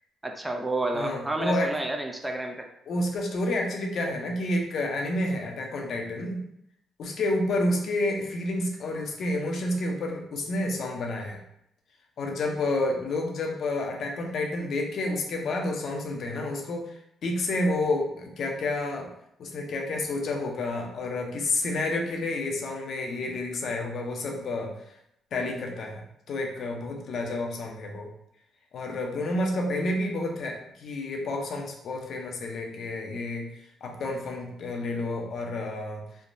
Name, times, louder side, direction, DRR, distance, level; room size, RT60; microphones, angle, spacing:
voice 1, 0.2-2.7, right 2 dB, 10° right, 3 dB, 0.3 m, -30 dB
voice 2, 0.9-1.7 2.9-6.4 7.0-11.4 12.2-16.9 17.2-19.1 19.4-24.7 25.3-26.0 26.3-28.1 28.7-33.5 33.8-36.0, left 2 dB, 60° left, 1 dB, 0.6 m, -29 dB
3.2 x 2.1 x 2.5 m, 0.76 s
cardioid pair, 90°, 0 cm